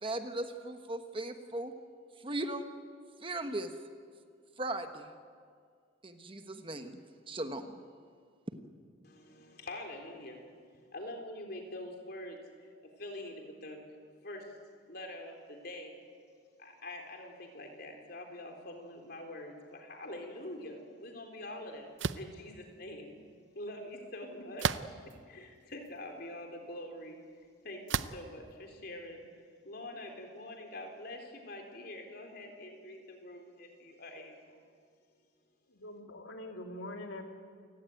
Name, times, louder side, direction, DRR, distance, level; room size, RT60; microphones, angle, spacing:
voice 1, 0.0-1.7 2.2-2.7 3.2-3.7 4.6-5.1 6.0-7.0 7.3-7.7, right 1 dB, 25° right, 7 dB, 1.2 m, -38 dB
voice 2, 9.0-10.4 10.9-12.7 13.0-13.8 14.2-14.5 14.9-15.9 16.6-23.2 23.5-25.0 25.3-27.2 27.6-29.2 29.6-34.6, left 1 dB, 50° left, 3 dB, 3.8 m, -45 dB
sound 1, 22.0-22.3 24.6-25.1 25.9-26.0 27.9-28.3, right 6 dB, 65° right, 0.7 m, -32 dB
voice 3, 35.7-37.2, left 1 dB, 80° left, 3 dB, 2.8 m, -43 dB
28.5 x 17.0 x 9.3 m, 2.1 s
head